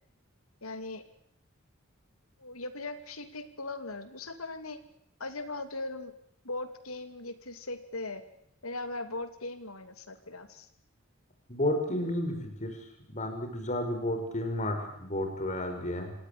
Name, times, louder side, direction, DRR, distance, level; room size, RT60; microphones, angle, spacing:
voice 1, 0.6-1.0 2.4-4.8 5.2-6.1 6.4-8.2 8.6-10.7, left 2 dB, 85° left, 10 dB, 2.8 m, -39 dB
voice 2, 11.5-16.1, left 1 dB, 35° left, 6 dB, 5.7 m, -32 dB
27.0 x 18.0 x 8.7 m, 0.71 s
head